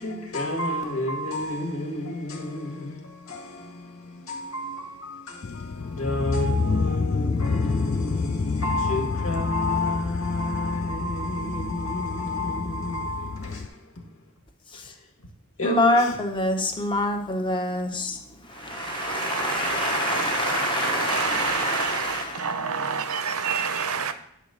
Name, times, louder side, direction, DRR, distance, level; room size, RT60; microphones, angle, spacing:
voice 1, 0.0-14.1 14.8-14.9 15.6-16.2, left 1 dB, 70° left, 1.8 m, -30 dB
sound 1, 5.4-13.7, left 4 dB, 40° left, 0.4 m, -28 dB
voice 2, 15.6-18.2 18.6-22.5, left 2 dB, 20° left, 1.0 m, -26 dB
voice 3, 18.6-24.1, right 6 dB, 80° right, 0.8 m, -28 dB
10.0 x 4.0 x 6.5 m
head